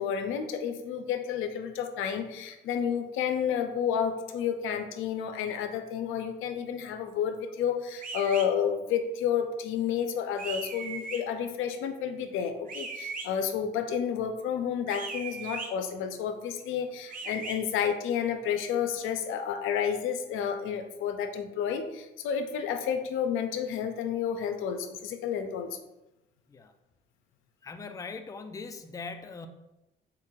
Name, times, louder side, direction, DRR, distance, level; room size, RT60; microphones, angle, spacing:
voice 1, 0.0-25.7, left 8 dB, 90° left, 7 dB, 0.5 m, -30 dB
sound 1, 8.0-8.5 10.4-11.2 12.7-13.3 14.9-15.7 17.1-17.6, right 4 dB, 45° right, 0.7 m, -38 dB
voice 2, 27.6-29.5, left 4 dB, 15° left, 8 dB, 0.4 m, -40 dB
4.1 x 2.5 x 4.5 m, 0.96 s
cardioid pair, 90°, 20 cm